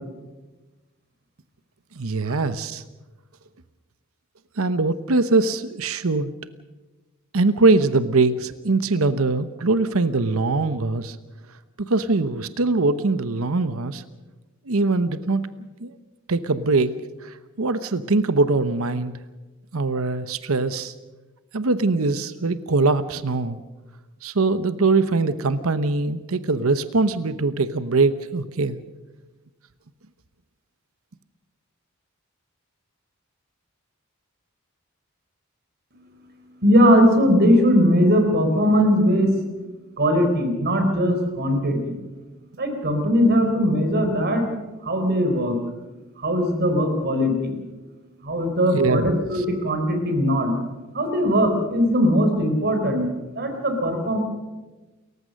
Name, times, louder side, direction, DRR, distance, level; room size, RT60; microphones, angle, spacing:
voice 1, 2.0-2.8 4.6-6.3 7.3-11.2 11.8-14.0 14.7-15.4 15.8-15.9 16.3-16.9 17.2-19.1 19.7-20.9 21.5-23.6 24.2-28.8 48.7-49.1 49.4-49.5, right 3 dB, 75° right, 12 dB, 0.9 m, -22 dB
voice 2, 36.6-39.3 40.0-42.0 42.6-44.5 44.8-45.6 46.2-47.6 48.2-50.5 50.9-53.1 53.4-54.2, equal, 50° right, 6 dB, 4.2 m, -20 dB
29.0 x 15.0 x 6.5 m, 1.2 s
head